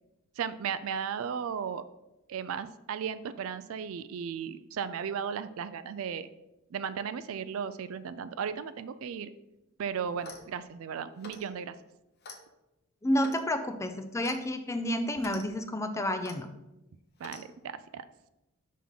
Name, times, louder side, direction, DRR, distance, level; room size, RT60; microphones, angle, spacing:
voice 1, 0.4-1.8 2.3-6.3 6.7-9.3 9.8-11.8 17.2-18.0, right 7 dB, 70° right, 13 dB, 0.3 m, -35 dB
Clock, 10.1-10.5 11.2-11.5 12.2-12.4 13.2-13.5 14.2-14.4 15.2-15.4 16.2-16.4 17.2-17.5, left 3 dB, 50° left, 0.7 m, -46 dB
voice 2, 13.0-16.5, left 1 dB, 15° left, 8 dB, 0.4 m, -30 dB
5.9 x 3.6 x 5.5 m, 0.94 s
head